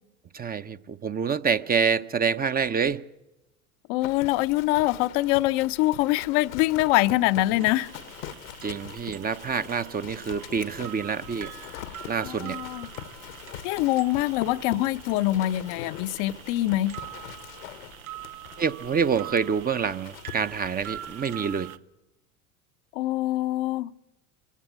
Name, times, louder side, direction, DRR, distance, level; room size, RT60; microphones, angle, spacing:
voice 1, 0.3-3.0 8.6-11.5 12.1-12.6 18.6-21.7, right 6 dB, 20° right, 0.7 m, -27 dB
voice 2, 3.9-7.9 12.2-12.9 13.6-17.0 22.9-23.9, left 16 dB, 55° left, 0.7 m, -24 dB
Livestock farm animals working animals, 4.0-21.6, left 11 dB, 70° left, 1.1 m, -43 dB
sound 1, 7.6-21.8, right 11 dB, 85° right, 0.8 m, -44 dB
24.0 x 15.5 x 8.4 m
hypercardioid pair, 75°, 41 cm